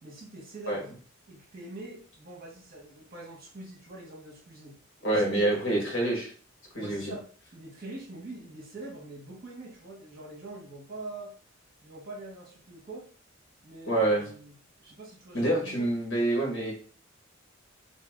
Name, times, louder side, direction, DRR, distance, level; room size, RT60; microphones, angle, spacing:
voice 1, 0.0-0.9 1.3-4.8 5.1-5.7 6.8-11.3 11.8-13.1 13.6-14.5 14.8-15.9, right 2 dB, 45° right, -2 dB, 1.1 m, -44 dB
voice 2, 5.0-6.3 6.7-7.1 13.9-14.2 15.3-16.7, right 2 dB, 65° left, -2 dB, 1.3 m, -26 dB
2.8 x 2.6 x 3.5 m, 0.43 s
head